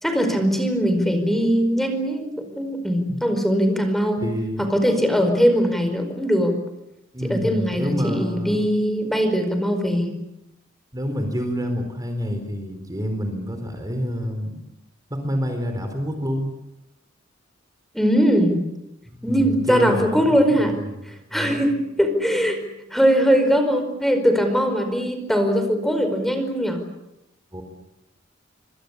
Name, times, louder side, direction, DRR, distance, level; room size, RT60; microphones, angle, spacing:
voice 1, 0.0-4.2 4.6-6.5 7.3-10.2 17.9-18.6 19.2-20.8 21.3-22.6 22.9-26.8, equal, ahead, 6 dB, 4.9 m, -21 dB
voice 2, 4.2-4.6 7.1-8.6 10.9-14.6 15.1-16.5 19.1-21.0 21.3-21.6 27.5-27.6, equal, 20° right, 5 dB, 4.3 m, -28 dB
27.0 x 26.0 x 8.4 m, 0.88 s
head